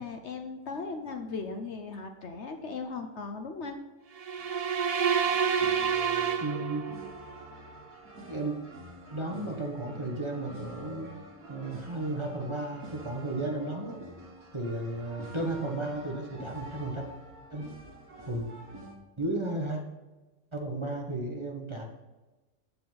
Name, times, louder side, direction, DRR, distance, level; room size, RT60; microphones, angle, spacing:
voice 1, 0.0-3.8, left 4 dB, 55° left, 5 dB, 1.0 m, -37 dB
sound 1, 4.2-7.2, right 7 dB, 50° right, 0.4 m, -28 dB
sound 2, 4.4-18.9, right 1 dB, 80° right, 2.4 m, -47 dB
voice 2, 6.4-6.9 8.3-8.6 9.1-11.1 11.5-14.0 14.5-17.1 17.5-17.7 18.3-18.5 19.2-19.8 20.5-21.9, right 2 dB, 20° right, 1 dB, 1.1 m, -34 dB
15.0 x 5.1 x 4.0 m, 1.2 s
omnidirectional pair, 1.5 m